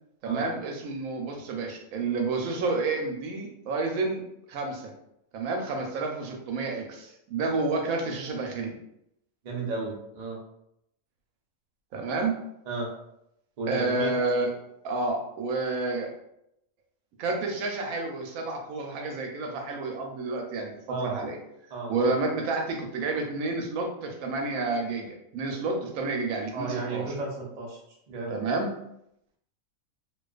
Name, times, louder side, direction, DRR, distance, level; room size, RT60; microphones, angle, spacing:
voice 1, 0.2-4.2 4.5-4.9 5.3-8.8 11.9-12.4 13.7-14.5 14.8-16.1 17.2-20.7 21.0-21.4 21.9-27.2 28.3-28.7, right 3 dB, 85° right, 2 dB, 1.0 m, -30 dB
voice 2, 9.4-10.4 12.7-12.9 13.6-14.1 20.9-21.2 21.7-22.1 26.5-27.8 28.1-28.3, right 3 dB, 60° right, -1 dB, 0.4 m, -33 dB
2.4 x 2.3 x 2.3 m, 0.79 s
omnidirectional pair, 1.4 m